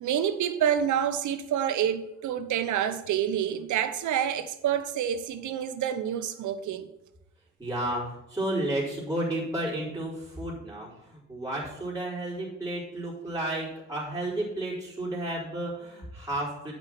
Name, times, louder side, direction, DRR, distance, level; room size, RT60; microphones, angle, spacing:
voice 1, 0.0-6.9, right 9 dB, 75° right, 0.9 m, -28 dB
voice 2, 7.6-16.7, right 1 dB, 10° right, 4.0 m, -32 dB
8.5 x 6.1 x 6.0 m
cardioid pair, 90°, 30 cm